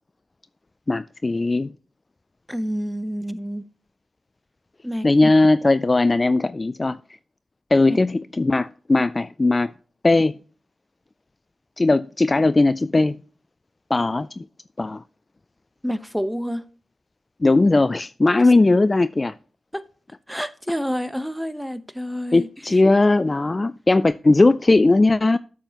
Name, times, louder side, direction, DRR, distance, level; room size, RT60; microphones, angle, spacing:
voice 1, 0.9-1.7 5.0-7.0 7.7-9.7 10.0-10.3 11.8-13.2 13.9-14.4 14.8-15.0 17.4-19.4 22.3-25.4, left 2 dB, 30° left, 0.3 m, -18 dB
voice 2, 2.5-3.6 4.8-5.3 7.9-8.0 15.8-16.7 19.7-19.8 20.3-22.8, equal, ahead, 0.8 m, -28 dB
9.1 x 7.0 x 2.9 m
cardioid pair, 55°, 0 cm